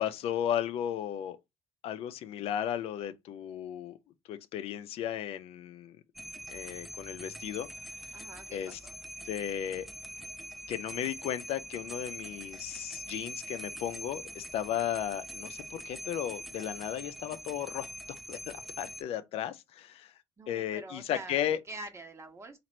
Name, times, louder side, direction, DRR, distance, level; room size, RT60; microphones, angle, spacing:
voice 1, 0.0-1.4 1.8-4.0 4.3-6.0 6.5-7.7 8.1-8.2 8.5-8.8 9.2-9.9 10.7-17.9 18.3-20.1 20.5-21.6, left 10 dB, 70° left, 0.5 m, -35 dB
sound 1, 6.2-19.0, equal, ahead, 0.3 m, -44 dB
voice 2, 8.1-8.9 20.4-22.6, right 2 dB, 25° right, 1.2 m, -45 dB
3.0 x 2.5 x 4.2 m
supercardioid pair, 70°, 11 cm